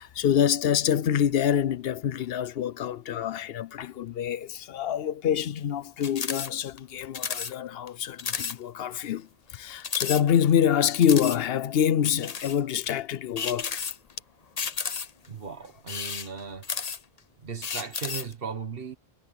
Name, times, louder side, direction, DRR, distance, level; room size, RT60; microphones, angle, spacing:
voice 1, 0.0-13.9, left 9 dB, 75° left, 0.8 m, -26 dB
sound 1, 6.0-6.5 6.8-6.9 7.1-7.5 7.9-8.0 8.2-8.6 9.0-9.1 9.8-10.6 11.0-11.4 12.0-12.6 13.4-14.2 14.6-15.3 15.8-17.2 17.6-18.3, left 6 dB, 45° left, 0.8 m, -32 dB
voice 2, 15.3-16.7 17.4-19.0, right 5 dB, 65° right, 1.6 m, -37 dB
omnidirectional pair, 1.0 m